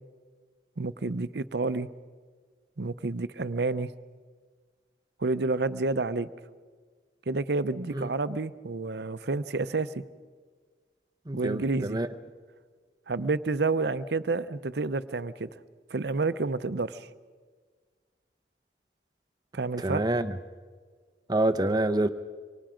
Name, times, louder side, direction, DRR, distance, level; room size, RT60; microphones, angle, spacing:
voice 1, 0.8-1.9 2.8-3.9 5.2-6.3 7.3-10.0 11.3-12.0 13.1-15.5 15.9-17.1 19.5-20.0, right 3 dB, 70° right, 13 dB, 0.7 m, -29 dB
voice 2, 11.3-12.1 19.8-20.3 21.3-22.1, right 1 dB, 25° right, 10 dB, 0.8 m, -26 dB
25.5 x 24.5 x 5.1 m, 1.5 s
head